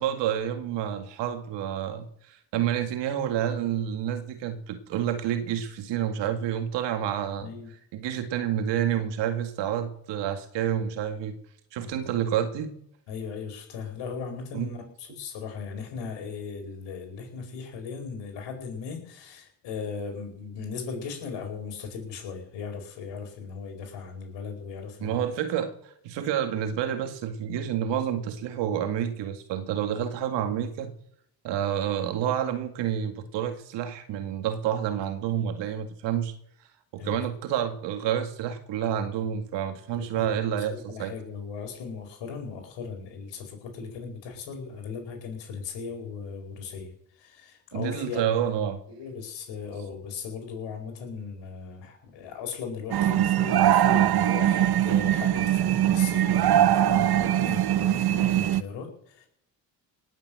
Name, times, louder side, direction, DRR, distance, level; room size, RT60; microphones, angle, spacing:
voice 1, 0.0-7.5 7.9-11.4 11.7-12.7 14.5-14.7 25.0-25.7 26.0-30.9 31.4-36.3 36.9-41.1 47.7-48.8, right 9 dB, 85° right, 7 dB, 2.1 m, -29 dB
voice 2, 7.4-7.7 11.8-11.9 13.1-25.3 37.0-37.2 39.9-48.3 48.9-59.3, left 5 dB, 85° left, 4 dB, 4.8 m, -38 dB
sound 1, 52.9-58.6, right 12 dB, 60° right, 1.0 m, -22 dB
19.5 x 7.5 x 7.7 m, 0.70 s
supercardioid pair, 60°, 42 cm